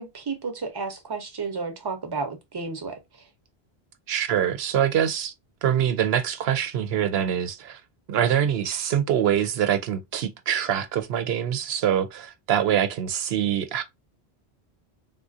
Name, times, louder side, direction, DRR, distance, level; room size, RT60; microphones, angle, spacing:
voice 1, 0.0-3.0, right 4 dB, 25° right, 0.7 m, -32 dB
voice 2, 4.1-5.3 5.6-7.8 8.1-13.8, right 9 dB, 70° right, 0.8 m, -24 dB
3.5 x 2.4 x 2.6 m
omnidirectional pair, 1.1 m